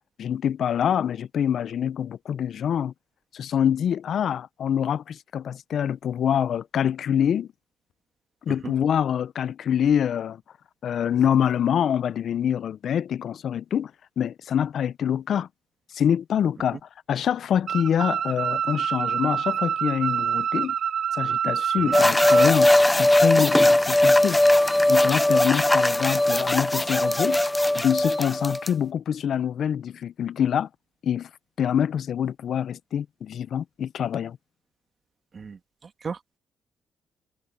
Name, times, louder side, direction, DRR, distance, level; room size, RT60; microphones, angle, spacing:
voice 1, 0.2-2.9 3.3-7.5 8.5-10.4 10.8-13.9 14.2-15.5 15.9-16.8 17.1-20.7 21.1-24.4 24.9-27.4 27.7-30.7 31.0-31.3 31.6-34.4, left 9 dB, 60° left, 0.5 m, -25 dB
sound 1, 17.7-22.5, right 8 dB, 60° right, 0.4 m, -27 dB
sound 2, 21.9-28.7, left 1 dB, 10° left, 0.5 m, -19 dB
voice 2, 35.3-36.4, right 5 dB, 40° right, 2.1 m, -36 dB
cardioid pair, 90°, 0 cm